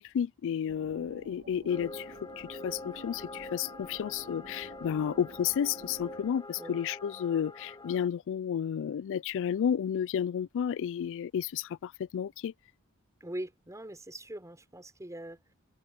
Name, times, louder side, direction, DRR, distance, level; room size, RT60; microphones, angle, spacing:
voice 1, 0.0-12.5, left 8 dB, 60° left, 0.3 m, -32 dB
sound 1, 0.7-6.3, right 1 dB, 45° right, 2.2 m, -51 dB
sound 2, 1.7-8.1, left 2 dB, 20° left, 3.4 m, -45 dB
voice 2, 13.2-15.5, right 1 dB, 15° right, 4.6 m, -42 dB
head